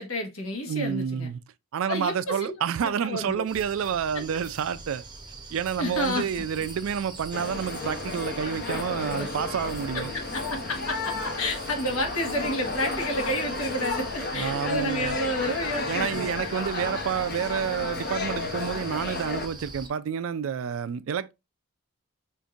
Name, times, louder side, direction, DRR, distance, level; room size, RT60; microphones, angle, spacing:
voice 1, 0.0-1.3 1.9-2.5 2.8-3.5 4.1-4.2 5.8-6.2 9.1-9.3 10.1-16.5, left 1 dB, 75° left, 1.2 m, -30 dB
voice 2, 0.7-1.4 1.7-5.0 5.5-10.1 14.3-15.2 15.9-21.3, right 7 dB, 65° right, 0.3 m, -29 dB
sound 1, 3.5-19.9, right 3 dB, 20° right, 0.6 m, -42 dB
sound 2, 5.7-14.2, left 2 dB, 15° left, 0.9 m, -52 dB
sound 3, 7.3-19.5, left 4 dB, 50° left, 0.7 m, -33 dB
5.1 x 2.6 x 2.4 m
head